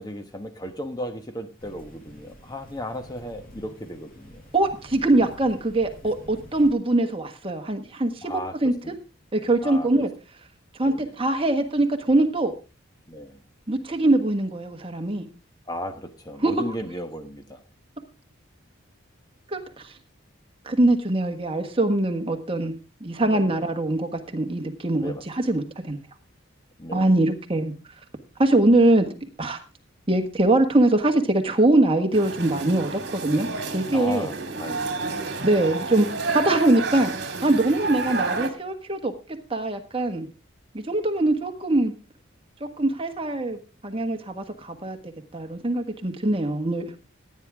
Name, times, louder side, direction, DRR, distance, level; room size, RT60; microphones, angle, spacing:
voice 1, 0.0-4.4 8.2-9.0 9.6-9.9 10.8-11.1 13.1-13.4 15.7-17.6 23.2-23.7 25.0-25.2 26.8-27.1 33.9-35.5, equal, 20° left, 8 dB, 1.2 m, -35 dB
sound 1, 1.6-6.7, equal, 45° left, 5.4 m, -48 dB
voice 2, 4.5-8.3 8.6-8.7 9.3-10.1 10.8-12.5 13.7-15.3 16.4-16.5 19.5-19.9 20.6-22.7 23.0-26.0 26.9-27.7 28.4-29.1 29.4-29.6 30.1-34.3 35.4-37.1 37.4-39.1 39.5-40.3 40.7-41.9 42.6-47.0, right 2 dB, 25° right, 4 dB, 1.4 m, -22 dB
Cafe busy with children, 32.1-38.5, right 3 dB, 50° right, 2.1 m, -30 dB
15.5 x 9.7 x 3.5 m, 0.32 s
head